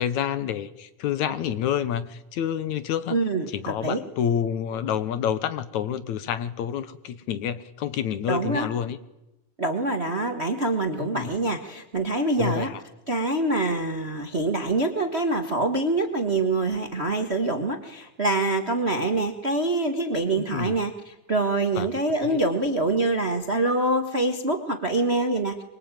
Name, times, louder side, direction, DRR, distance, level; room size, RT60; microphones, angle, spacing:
voice 1, 0.0-3.2 3.5-9.0 11.0-11.3 12.4-12.8 20.4-20.7 21.8-21.9 22.2-22.4, left 9 dB, 70° left, 14 dB, 2.4 m, -28 dB
voice 2, 3.1-4.0 8.3-8.7 9.6-12.7 13.1-25.6, right 2 dB, 35° right, 7 dB, 1.1 m, -25 dB
24.5 x 23.5 x 9.1 m, 0.92 s
omnidirectional pair, 3.6 m